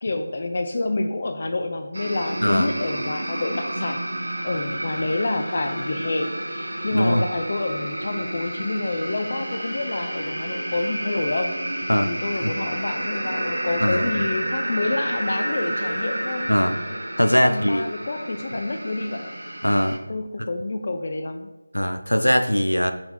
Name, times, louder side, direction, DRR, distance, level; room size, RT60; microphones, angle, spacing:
voice 1, 0.0-4.0 4.4-11.6 12.0-16.5 17.4-19.3 20.1-21.5, left 2 dB, 35° left, 7 dB, 0.5 m, -28 dB
sound 1, 1.9-20.0, right 1 dB, 60° right, 1.1 m, -30 dB
voice 2, 2.4-2.7 6.9-7.3 11.9-12.5 13.8-14.1 16.5-16.8 17.2-17.8 19.6-20.0 21.7-22.9, equal, 80° left, 7 dB, 0.6 m, -21 dB
6.6 x 4.3 x 4.1 m, 1.0 s
figure-of-eight pair, 165°, 0 cm